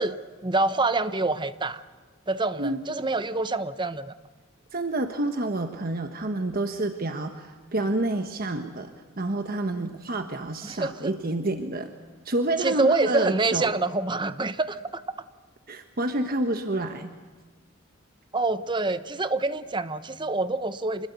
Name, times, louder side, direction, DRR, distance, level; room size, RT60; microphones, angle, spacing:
voice 1, 0.0-1.8 2.3-4.1 10.6-11.1 12.6-15.0 18.3-21.1, right 3 dB, 20° right, 12 dB, 0.9 m, -26 dB
voice 2, 4.7-8.9 9.2-11.9 12.2-13.7 15.7-17.1, right 2 dB, 45° right, 7 dB, 1.2 m, -28 dB
27.0 x 21.0 x 8.2 m, 1.4 s
head